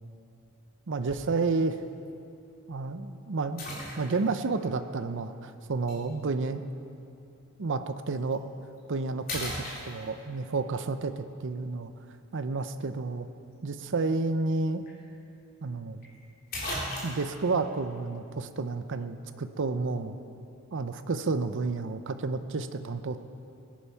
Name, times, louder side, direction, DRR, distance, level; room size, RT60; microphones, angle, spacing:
voice 1, 0.9-1.8 2.7-3.7 4.0-6.6 7.6-8.5 8.9-11.9 12.3-13.3 13.6-14.9 15.6-16.0 17.0-20.2 20.7-23.2, right 3 dB, 60° right, 10 dB, 0.7 m, -30 dB
sound 1, 1.1-1.4 2.1-2.2 3.6-4.4 5.9-6.0 8.2-8.3 8.8-9.0 9.3-10.4 14.5-14.6 14.9-15.0 16.0-16.1 16.5-17.4, left 1 dB, 45° left, 3.6 m, -36 dB
20.0 x 10.5 x 5.6 m, 2.7 s
head